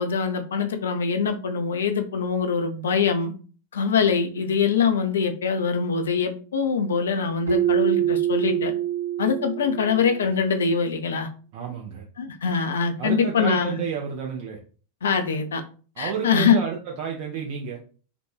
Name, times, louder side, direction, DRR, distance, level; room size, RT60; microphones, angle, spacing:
voice 1, 0.0-3.3 3.7-8.7 9.2-11.3 12.2-13.8 15.0-15.6 16.0-16.6, left 6 dB, 65° left, 7 dB, 0.3 m, -23 dB
Keyboard (musical), 7.5-10.3, right 11 dB, 75° right, 1.1 m, -25 dB
voice 2, 11.5-12.0 13.0-14.6 16.0-17.8, right 7 dB, 45° right, 0 dB, 0.4 m, -30 dB
2.5 x 2.2 x 2.3 m, 0.39 s
figure-of-eight pair, 90°, 0 cm